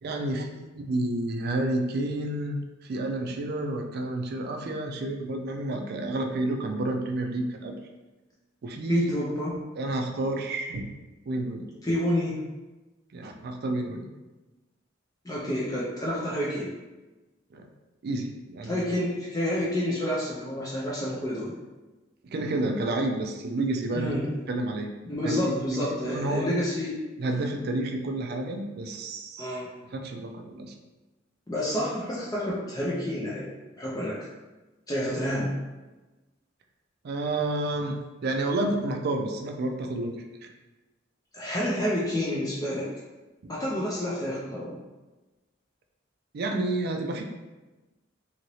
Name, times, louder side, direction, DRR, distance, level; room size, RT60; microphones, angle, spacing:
voice 1, 0.0-7.8 8.6-9.1 9.8-10.9 11.3-11.6 13.1-14.1 17.5-17.7 18.0-19.0 22.2-24.1 24.5-24.9 25.2-26.5 27.2-29.5 29.9-30.7 37.0-40.5 46.3-47.2, right 2 dB, 55° right, 4 dB, 0.4 m, -30 dB
voice 2, 8.9-9.6 11.8-12.4 15.2-16.7 18.7-21.5 23.9-24.3 25.1-27.0 29.4-29.7 31.5-33.5 33.8-34.2 34.9-35.6 41.3-42.9 43.5-44.7, left 1 dB, 20° left, -6 dB, 0.5 m, -29 dB
2.8 x 2.7 x 3.0 m, 1.1 s
head